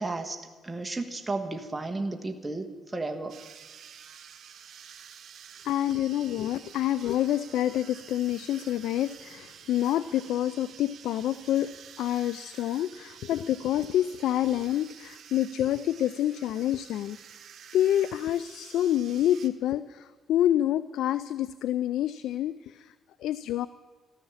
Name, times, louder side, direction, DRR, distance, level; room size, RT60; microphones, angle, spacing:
voice 1, 0.0-3.4, right 2 dB, 15° right, 4 dB, 1.4 m, -33 dB
sound 1, 3.3-19.5, right 8 dB, 65° right, 1.3 m, -49 dB
voice 2, 5.6-11.7 12.0-17.2 17.7-22.9 23.2-23.7, left 12 dB, 85° left, 16 dB, 0.4 m, -27 dB
13.5 x 13.0 x 7.2 m, 1.3 s
cardioid pair, 90°, 0 cm